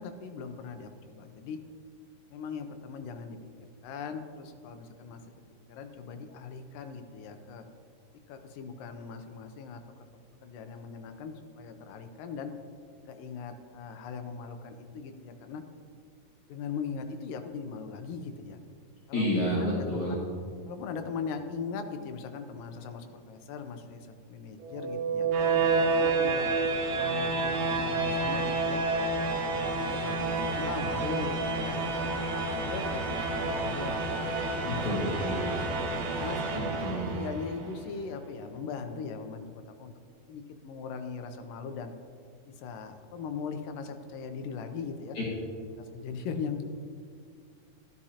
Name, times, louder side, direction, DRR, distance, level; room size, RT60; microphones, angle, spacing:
voice 1, 0.0-1.6 2.3-3.4 3.8-5.2 5.7-7.7 8.3-9.8 10.4-12.5 13.0-15.6 16.5-18.6 19.1-19.3 19.6-20.2 20.7-25.3 26.0-26.5 26.9-28.8 29.3-32.2 32.7-34.7 35.2-36.4 37.1-39.9 40.3-41.9 42.5-45.2 45.8-46.6, left 5 dB, 80° left, 7 dB, 2.0 m, -39 dB
voice 2, 19.1-20.2 34.6-35.5 36.5-37.2 45.1-45.2, left 1 dB, 55° left, -7 dB, 3.1 m, -30 dB
sound 1, 24.6-37.6, right 3 dB, 80° right, 3.1 m, -29 dB
13.5 x 12.0 x 2.8 m, 2.2 s
omnidirectional pair, 4.4 m